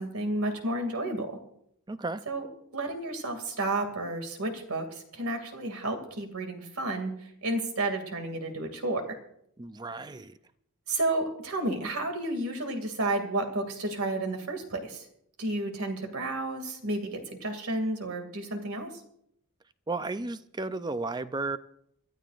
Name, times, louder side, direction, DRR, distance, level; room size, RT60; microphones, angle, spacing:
voice 1, 0.0-1.4 2.3-2.5 2.7-9.2 10.9-15.0 15.4-18.9, right 2 dB, 85° right, 5 dB, 2.4 m, -31 dB
voice 2, 1.9-2.2 9.6-10.4 19.9-21.6, right 3 dB, 20° right, 12 dB, 0.5 m, -33 dB
26.5 x 12.5 x 2.5 m, 0.73 s
head